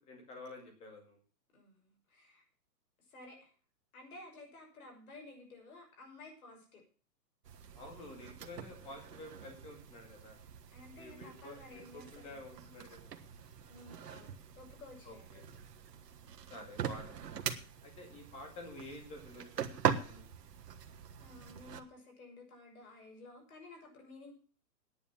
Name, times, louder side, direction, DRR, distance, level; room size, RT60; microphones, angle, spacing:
voice 1, 0.1-1.2 7.7-10.4 11.0-13.1 15.0-15.4 16.5-17.3 17.8-20.2, left 2 dB, 10° left, 3 dB, 2.2 m, -50 dB
voice 2, 1.5-2.4 3.1-3.5 3.9-6.8 10.7-12.6 13.7-15.4 21.2-24.3, left 2 dB, 55° left, 2 dB, 6.4 m, -54 dB
sound 1, 7.4-21.8, right 8 dB, 70° right, 1.5 m, -42 dB
10.0 x 8.7 x 7.4 m, 0.41 s
hypercardioid pair, 170°, 50 cm